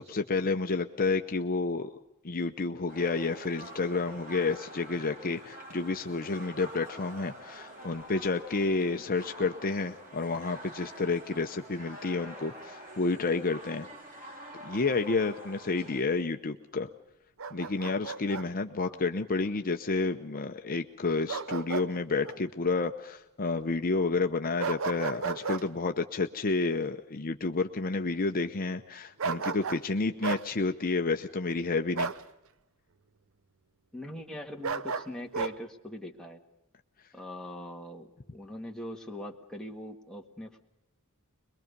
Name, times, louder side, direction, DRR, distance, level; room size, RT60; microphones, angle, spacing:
voice 1, 0.0-1.9 2.2-13.9 14.5-16.9 17.5-32.1, left 3 dB, 40° left, 6 dB, 0.8 m, -30 dB
sound 1, 2.9-16.0, right 1 dB, 40° right, 4.6 m, -47 dB
Bark, 17.4-18.5 21.3-21.9 22.2-22.4 24.6-25.6 29.2-29.9 30.2-30.5 32.0-32.2 34.6-35.5, right 5 dB, 65° right, 0.8 m, -33 dB
voice 2, 33.9-36.4 37.1-40.6, left 1 dB, 5° left, 1 dB, 1.7 m, -42 dB
23.0 x 22.5 x 5.3 m, 0.94 s
head